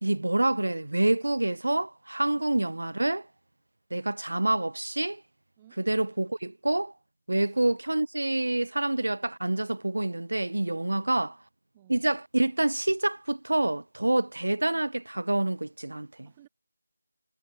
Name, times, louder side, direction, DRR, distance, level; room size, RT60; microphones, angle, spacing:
voice 1, 0.0-3.3 3.9-5.2 5.8-6.9 7.3-11.4 11.9-16.1, right 2 dB, 70° right, 0.6 m, -27 dB
voice 2, 10.7-11.3 11.7-12.0 16.2-16.5, right 13 dB, 15° right, 7.6 m, -58 dB
figure-of-eight pair, 165°, 0 cm